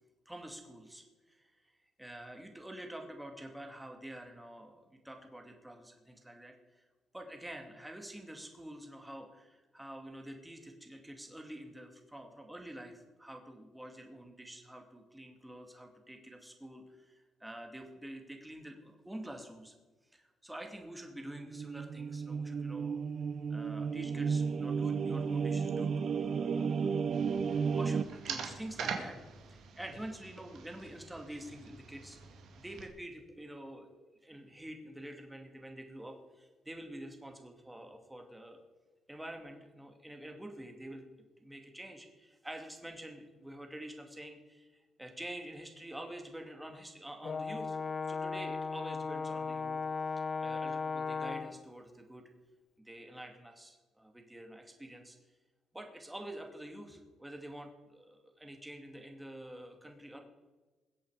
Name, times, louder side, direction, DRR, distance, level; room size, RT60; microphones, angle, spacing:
voice 1, 0.3-1.7 2.0-6.8 7.1-19.7 20.1-23.0 23.5-27.0 27.5-29.2 29.5-32.2 32.6-38.6 39.1-41.0 41.4-47.8 48.1-49.8 50.4-52.3 52.8-55.2 55.7-60.2, right 1 dB, 10° right, 3 dB, 2.6 m, -47 dB
sound 1, 21.3-28.0, right 6 dB, 50° right, 0.6 m, -33 dB
sound 2, 27.1-32.9, right 6 dB, 75° right, 2.1 m, -44 dB
Brass instrument, 47.2-51.6, left 4 dB, 40° left, 0.8 m, -36 dB
21.5 x 8.2 x 5.1 m, 1.2 s
cardioid pair, 90°, 0 cm